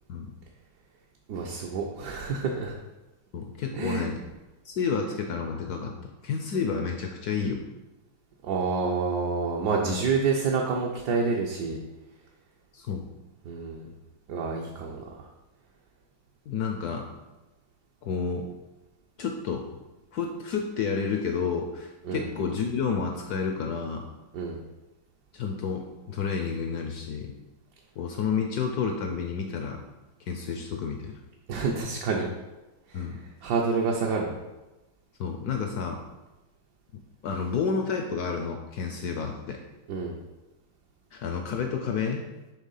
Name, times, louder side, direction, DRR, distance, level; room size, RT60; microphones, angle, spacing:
voice 1, 1.3-2.7 3.7-4.1 8.4-11.8 13.4-13.9 14.3-15.0 22.0-22.3 24.3-24.6 31.5-32.3 32.9-33.1 33.4-34.4 39.9-40.2, right 4 dB, 65° right, -1 dB, 1.1 m, -28 dB
voice 2, 3.3-4.2 4.6-7.6 9.9-10.0 12.7-13.0 16.5-17.1 18.0-18.5 19.2-19.7 20.1-24.1 25.3-27.3 28.0-29.8 30.3-31.1 32.9-33.2 35.2-36.0 37.2-39.6 41.1-42.2, left 5 dB, 75° left, 3 dB, 0.9 m, -30 dB
6.4 x 3.5 x 5.5 m, 1.1 s
omnidirectional pair, 2.2 m